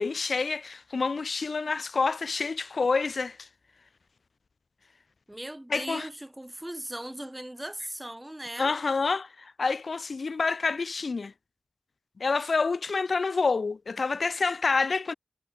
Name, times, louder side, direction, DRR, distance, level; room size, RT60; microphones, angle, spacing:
voice 1, 0.0-3.5 5.7-6.1 8.6-11.3 12.2-15.1, left 4 dB, 80° left, 1.4 m, -28 dB
voice 2, 5.3-8.7, right 1 dB, 15° right, 6.7 m, -38 dB
wide cardioid pair, 75°, 0 cm